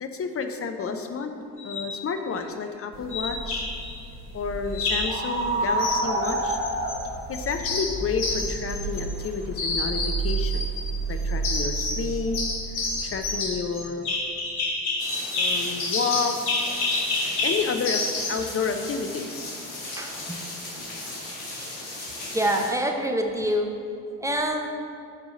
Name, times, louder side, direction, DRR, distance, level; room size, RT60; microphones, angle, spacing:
voice 1, 0.0-1.3 1.6-3.7 4.3-6.6 7.3-10.6 11.1-12.4 13.0-14.1 15.4-16.4 17.4-18.0 18.3-19.5, left 5 dB, 30° left, 6 dB, 0.7 m, -30 dB
sound 1, 1.6-1.9 3.1-3.9 4.7-5.2 5.8-7.0 7.3-9.3 9.6-10.9 11.4-12.0 12.3-18.4, left 3 dB, 50° left, 1.6 m, -28 dB
sound 2, 2.9-13.2, right 3 dB, 65° right, 1.6 m, -30 dB
sound 3, 15.0-22.7, left 2 dB, 70° left, 1.7 m, -37 dB
voice 2, 20.0-20.4 22.3-23.7 24.2-24.7, equal, 5° right, 2 dB, 0.8 m, -25 dB
8.5 x 4.8 x 3.8 m, 2.6 s
figure-of-eight pair, 45°, 48 cm